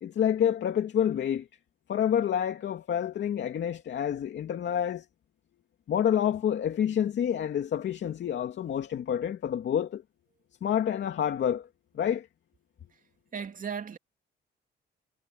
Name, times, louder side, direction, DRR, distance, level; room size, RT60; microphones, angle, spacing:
voice 1, 0.0-1.5 1.9-5.0 5.9-10.0 10.6-11.7 11.9-12.3, left 9 dB, 65° left, 2.6 m, -28 dB
voice 2, 13.3-14.0, right 6 dB, 45° right, 2.4 m, -36 dB
cardioid pair, 90°, 20 cm